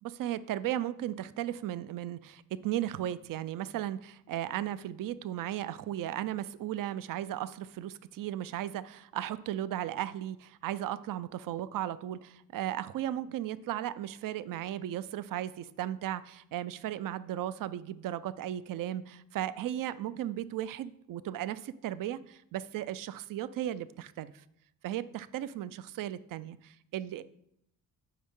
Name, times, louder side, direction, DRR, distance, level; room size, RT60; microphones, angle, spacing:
voice 1, 0.0-24.4 24.8-27.2, right 12 dB, 65° right, 16 dB, 0.5 m, -36 dB
9.4 x 4.8 x 3.7 m, 0.77 s
cardioid pair, 130°, 36 cm